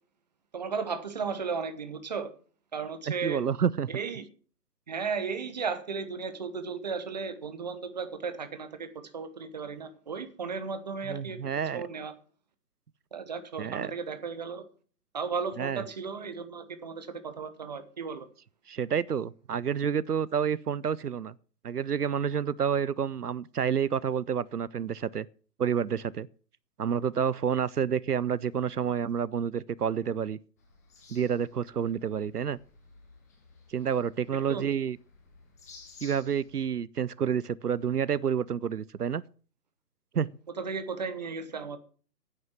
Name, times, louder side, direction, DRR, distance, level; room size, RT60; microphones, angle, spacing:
voice 1, 0.5-2.3 2.7-3.4 3.9-4.2 4.9-11.4 11.7-12.1 13.1-14.6 15.1-18.3 34.4-34.7 40.6-41.8, right 5 dB, 25° right, 1.0 m, -35 dB
voice 2, 3.2-3.9 11.0-11.8 13.6-13.9 15.6-15.8 18.7-21.3 21.6-25.3 25.6-26.3 26.8-30.4 31.1-32.6 33.7-35.0 36.0-39.2 40.1-40.3, right 7 dB, 70° right, 0.6 m, -29 dB
sound 1, 30.6-36.7, left 4 dB, 10° left, 0.9 m, -55 dB
9.7 x 8.6 x 7.3 m
figure-of-eight pair, 140°, 49 cm